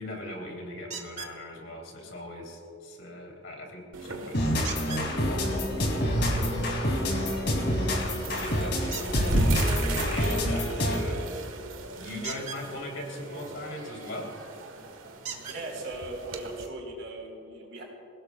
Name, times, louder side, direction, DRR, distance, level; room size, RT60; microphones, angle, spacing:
voice 1, 0.0-9.2 9.7-11.4 11.9-14.4 15.3-15.4, left 1 dB, 75° left, 0 dB, 3.5 m, -40 dB
sound 1, 0.9-1.4 4.6-5.1 8.9-9.3 12.2-12.6 14.3-14.4 15.2-15.6 16.6-16.7 17.2-17.3, right 6 dB, 35° right, 1.5 m, -38 dB
sound 2, 3.9-16.7, right 1 dB, 90° right, 1.5 m, -34 dB
sound 3, 4.3-11.2, equal, 55° left, 2.9 m, -28 dB
voice 2, 15.4-17.8, right 2 dB, 70° right, -1 dB, 4.4 m, -39 dB
27.5 x 17.0 x 2.4 m, 2.5 s
head